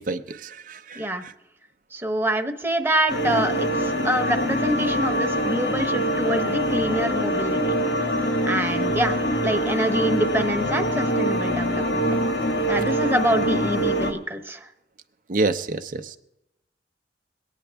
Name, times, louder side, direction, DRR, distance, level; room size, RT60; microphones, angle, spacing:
voice 1, 0.0-1.3 15.3-16.2, right 3 dB, 50° right, 8 dB, 0.6 m, -28 dB
voice 2, 1.9-7.8 8.5-12.1 12.7-14.7, equal, 15° right, 4 dB, 1.0 m, -26 dB
sound 1, 3.1-14.1, equal, 90° left, 1.8 m, -24 dB
22.5 x 9.1 x 3.5 m, 0.93 s
head